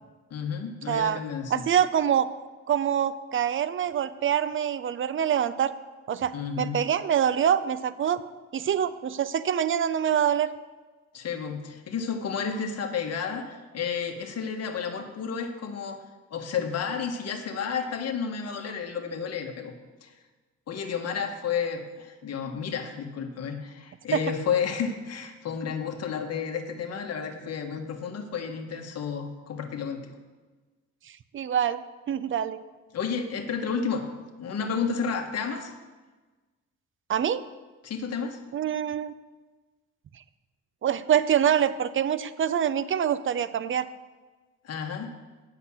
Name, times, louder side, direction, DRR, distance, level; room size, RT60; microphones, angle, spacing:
voice 1, 0.3-1.6 6.3-6.8 11.1-16.0 16.3-19.7 20.0-20.1 20.7-30.2 32.9-34.0 34.4-35.7 37.8-38.4 44.6-45.1, left 6 dB, 55° left, 3 dB, 1.3 m, -31 dB
voice 2, 0.9-1.2 1.5-2.3 2.7-5.7 6.1-8.2 8.5-10.5 24.1-24.2 31.3-32.6 37.1-37.4 38.5-39.1 40.8-43.9, right 9 dB, 40° right, 15 dB, 0.5 m, -25 dB
8.1 x 5.9 x 7.2 m, 1.3 s
cardioid pair, 90°, 30 cm